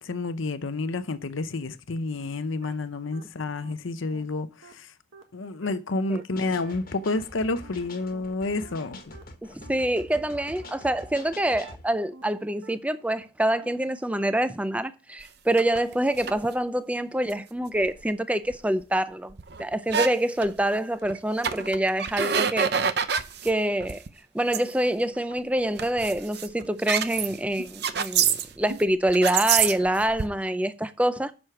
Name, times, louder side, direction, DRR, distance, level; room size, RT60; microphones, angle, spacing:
voice 1, 0.0-4.5 4.7-4.9 5.3-9.0, left 3 dB, 75° left, 0.7 m, -29 dB
sound 1, 2.2-2.3 2.6-2.7 3.1-3.2 3.6-3.7 4.1-4.2 4.6-4.7 5.1-5.2 5.6-5.7 6.1-6.2 6.6-6.7 7.1-7.2 7.6-7.7 8.1-8.2 8.6-8.7 9.1-9.2 9.6-9.7 10.1-10.2 10.6-10.7 11.1-11.2 11.6-11.7 12.1-12.2 12.6-12.7 13.1-13.2 13.6-13.7 14.1-14.2, right 3 dB, 75° right, 1.4 m, -48 dB
sound 2, 6.4-11.8, left 2 dB, 45° left, 1.4 m, -45 dB
voice 2, 9.5-22.8 23.4-24.0 24.3-28.3 28.6-31.3, right 1 dB, 5° right, 0.4 m, -26 dB
sound 3, 15.6-16.4 17.3-17.4 17.8-18.0 18.5-18.6 18.8-18.9 19.3-20.1 20.4-20.6 21.0-21.2 21.4-23.5 23.8-24.1 24.5-24.6 25.2-25.4 25.8-28.8 29.1-30.2, right 7 dB, 50° right, 0.6 m, -26 dB
7.9 x 6.3 x 5.8 m
head